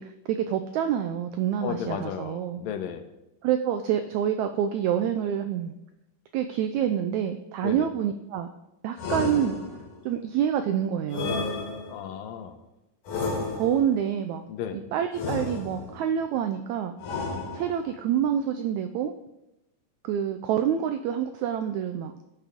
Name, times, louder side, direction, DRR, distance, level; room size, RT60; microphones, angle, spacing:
voice 1, 0.0-2.6 3.4-5.7 6.3-8.5 8.8-9.6 10.0-11.5 13.5-14.4 14.7-16.9 17.5-19.1 20.0-22.1, right 9 dB, 85° right, 8 dB, 1.6 m, -27 dB
voice 2, 1.6-3.1 7.6-7.9 11.9-12.6 14.5-14.8, left 8 dB, 90° left, 7 dB, 2.6 m, -34 dB
sound 1, 9.0-10.0 11.1-12.2 13.1-14.0 15.1-16.1 17.0-18.0, left 4 dB, 65° left, 3.0 m, -32 dB
18.5 x 7.0 x 3.6 m, 0.93 s
omnidirectional pair, 3.9 m